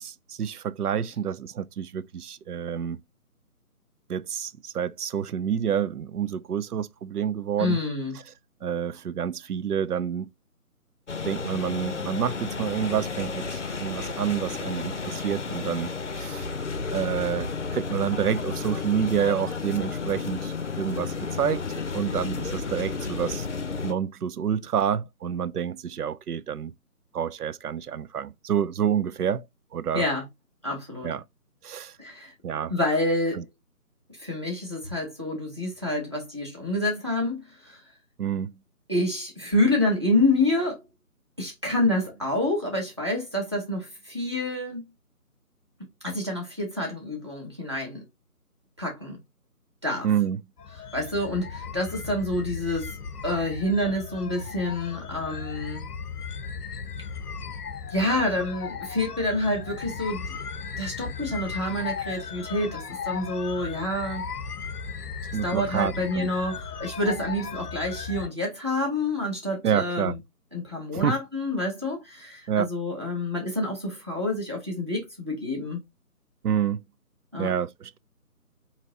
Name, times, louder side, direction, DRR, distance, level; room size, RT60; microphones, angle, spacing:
voice 1, 0.0-3.0 4.1-7.8 8.6-10.3 11.2-16.5 16.9-21.6 21.9-23.5 23.8-26.7 27.1-29.4 29.7-30.0 31.0-31.2 31.6-31.9 32.4-32.7 33.3-33.4 38.2-38.6 50.0-50.4 65.3-66.3 69.6-70.2 70.9-71.2 72.5-72.7 76.4-76.8 77.4-78.0, right 8 dB, 80° right, 0.6 m, -28 dB
voice 2, 7.6-8.1 29.9-30.2 30.6-31.1 32.0-32.3 32.7-33.4 34.2-37.8 38.9-40.8 41.4-44.8 46.0-48.0 48.8-49.2 49.8-50.1 50.9-52.9 53.2-55.9 57.9-60.3 60.8-64.2 65.4-70.2 70.5-75.8 77.3-77.5, left 1 dB, 20° right, 0.8 m, -28 dB
sound 1, 11.1-23.9, left 4 dB, 50° left, 0.6 m, -32 dB
sound 2, 50.6-68.3, left 6 dB, 85° left, 0.7 m, -36 dB
4.9 x 2.8 x 2.8 m
figure-of-eight pair, 165°, 45 cm